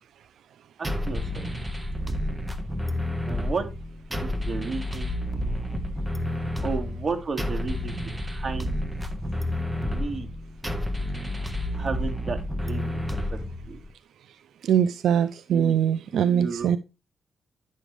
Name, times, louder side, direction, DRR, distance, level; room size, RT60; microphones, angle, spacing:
sound 1, 0.8-13.9, left 1 dB, 10° right, 1.4 m, -30 dB
voice 1, 0.8-1.5 3.3-3.6 4.2-5.1 6.6-8.0 8.2-8.8 9.8-10.3 11.7-13.4 13.7-13.8 15.5-15.7 16.1-16.8, right 4 dB, 40° right, 2 dB, 2.4 m, -33 dB
voice 2, 14.6-16.8, right 9 dB, 80° right, 14 dB, 0.4 m, -22 dB
11.0 x 6.5 x 3.4 m, 0.29 s
cardioid pair, 65°, 0 cm